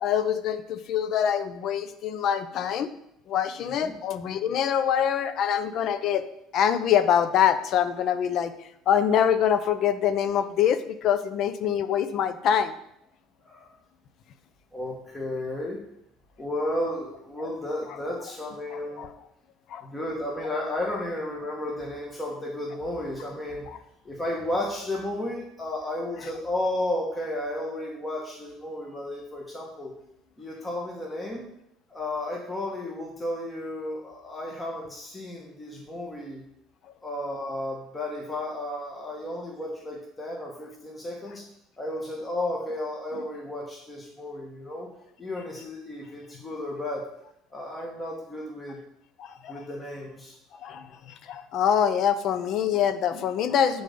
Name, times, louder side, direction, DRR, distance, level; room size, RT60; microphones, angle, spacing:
voice 1, 0.0-2.9 3.3-6.2 6.5-8.5 8.9-12.7 17.4-17.5 19.0-19.1 19.7-19.8 49.2-49.5 50.6-50.9 51.3-53.8, left 8 dB, 50° left, 11 dB, 0.5 m, -24 dB
voice 2, 3.6-4.0 13.4-13.7 14.7-15.8 16.4-19.1 19.8-23.7 24.0-29.9 30.4-31.5 31.9-36.4 37.0-41.4 41.8-44.9 45.2-47.0 47.5-48.8 49.5-50.4, left 1 dB, 15° left, -2 dB, 1.1 m, -33 dB
8.5 x 3.9 x 5.0 m, 0.77 s
cardioid pair, 140°, 0 cm